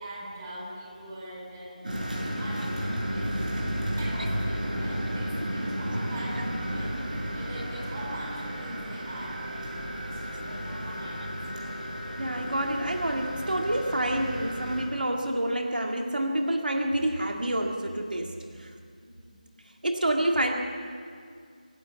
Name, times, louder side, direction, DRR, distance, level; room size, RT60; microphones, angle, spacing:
voice 1, 0.0-2.0 2.4-3.3 4.0-9.7 10.0-11.4 18.9-19.4, right 1 dB, 20° right, -3 dB, 4.4 m, -43 dB
sound 1, 1.8-14.9, equal, 65° right, 6.3 m, -33 dB
voice 2, 12.2-18.7 19.8-20.5, right 1 dB, 85° right, 3 dB, 2.0 m, -28 dB
25.5 x 11.5 x 9.3 m, 2.2 s
figure-of-eight pair, 170°, 5 cm